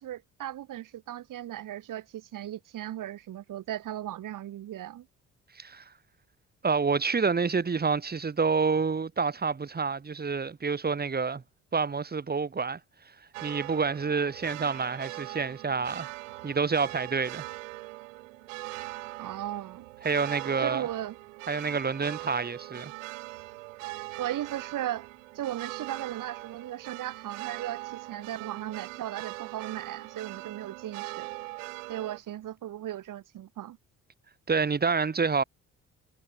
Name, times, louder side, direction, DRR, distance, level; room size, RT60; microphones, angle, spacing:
voice 1, 0.0-5.1 19.2-19.8 20.6-21.2 24.2-25.1 25.3-31.3 31.9-33.8, right 12 dB, 55° right, 1.6 m, -36 dB
voice 2, 5.5-5.8 6.6-11.4 11.7-12.8 13.4-16.1 16.4-17.5 20.0-20.9 21.5-22.9 34.5-35.4, right 5 dB, 25° right, 1.4 m, -28 dB
sound 1, 13.3-32.2, right 22 dB, 80° right, 2.9 m, -41 dB
hypercardioid pair, 45°, 38 cm